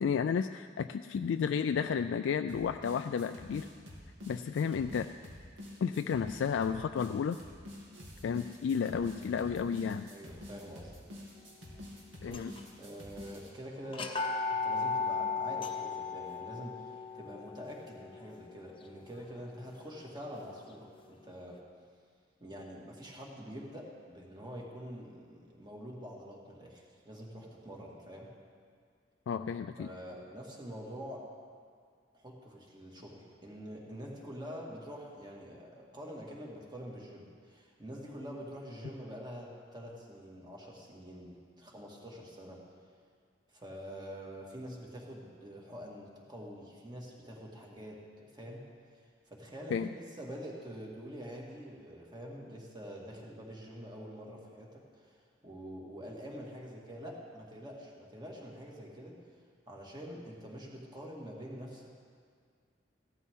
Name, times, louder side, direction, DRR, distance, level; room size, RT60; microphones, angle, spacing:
voice 1, 0.0-3.7 4.3-5.1 5.8-7.4 8.2-10.1 12.2-12.5 29.3-29.9 49.7-49.9, left 6 dB, 75° left, 8 dB, 0.3 m, -32 dB
sound 1, 2.5-13.5, left 1 dB, 90° right, 2.6 m, -48 dB
voice 2, 10.1-11.0 12.3-14.2 14.5-21.6 22.4-28.3 29.8-31.3 32.1-42.6 43.5-48.6 49.3-59.2 59.7-61.9, equal, 25° right, -2 dB, 2.0 m, -46 dB
sound 2, 12.3-12.8 13.2-13.3 13.9-19.8, left 4 dB, 30° left, 0.8 m, -36 dB
16.0 x 12.5 x 3.7 m, 2.1 s
head